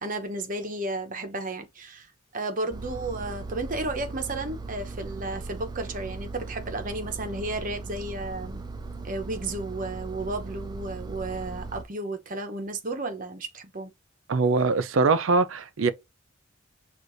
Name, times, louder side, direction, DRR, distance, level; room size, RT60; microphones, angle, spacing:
voice 1, 0.0-2.1 2.3-8.6 9.0-13.9, right 2 dB, 40° right, 0.9 m, -33 dB
Engine, 2.7-11.8, right 3 dB, 20° right, 0.4 m, -38 dB
voice 2, 14.3-15.9, right 4 dB, 75° right, 0.5 m, -22 dB
6.6 x 2.5 x 2.6 m
head